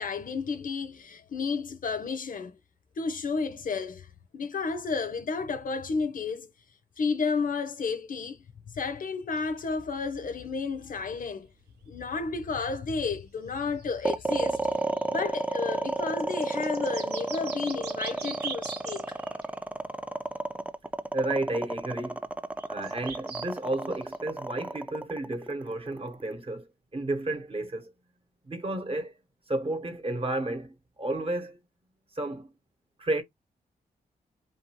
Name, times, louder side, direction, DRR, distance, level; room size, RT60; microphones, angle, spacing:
voice 1, 0.0-2.6 3.0-4.1 4.3-6.5 7.0-8.4 8.7-11.5 11.9-14.6 15.1-19.2, left 4 dB, 55° left, 0.5 m, -32 dB
sound 1, 9.4-9.7 10.7-10.8 13.0-13.1 13.3-13.4 13.6-19.6 21.2-21.3 22.6-23.5 24.1-24.2, right 6 dB, 80° right, 0.7 m, -42 dB
Voice Horror, 14.0-26.3, right 2 dB, 10° right, 0.3 m, -31 dB
voice 2, 21.1-22.2 22.7-26.7 26.9-27.9 28.5-29.1 29.5-31.6 32.2-32.5 33.0-33.2, right 2 dB, 35° right, 0.9 m, -32 dB
2.6 x 2.3 x 2.8 m
supercardioid pair, 45°, 17 cm